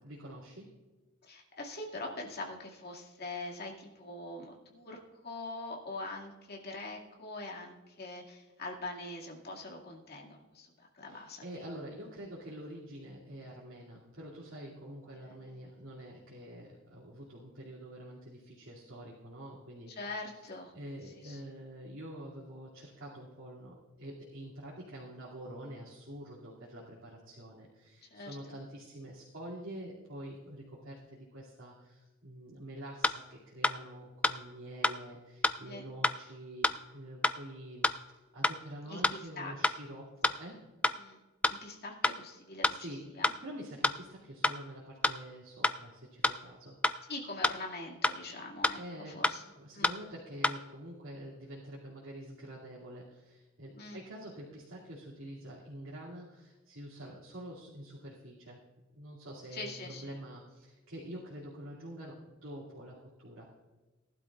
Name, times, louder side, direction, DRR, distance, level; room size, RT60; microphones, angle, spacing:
voice 1, 0.0-0.7 11.0-20.0 20.7-37.9 38.3-40.6 42.7-46.8 48.7-49.2 49.5-58.6 59.0-63.5, right 1 dB, 75° right, -8 dB, 2.6 m, -46 dB
voice 2, 1.2-11.4 15.2-15.3 19.9-20.7 21.2-21.4 28.1-28.5 35.6-35.8 38.9-39.5 41.0-41.2 41.6-42.7 43.2-43.3 47.1-49.4 49.7-49.9 53.7-54.0 59.5-60.1, left 2 dB, 50° left, -1 dB, 2.2 m, -43 dB
sound 1, 33.0-33.1 33.6-33.7 34.2-34.3 34.8-34.9 35.4-35.5 36.0-36.1 36.6-36.7 37.2-37.3 37.8-37.9 38.4-38.5 39.0-39.1 39.6-39.7 40.2-40.3 40.8-40.9 41.4-41.5 42.0-42.1 42.6-42.7 43.2-43.3 43.8-43.9 44.4-44.5 45.0-45.1 45.6-45.7 46.2-46.3 46.8-46.9 47.4-47.5 48.0-48.1 48.6-48.7 49.2-49.3 49.8-49.9 50.4-50.5, left 1 dB, 5° left, 0.3 m, -26 dB
18.5 x 12.0 x 2.5 m, 1.2 s
head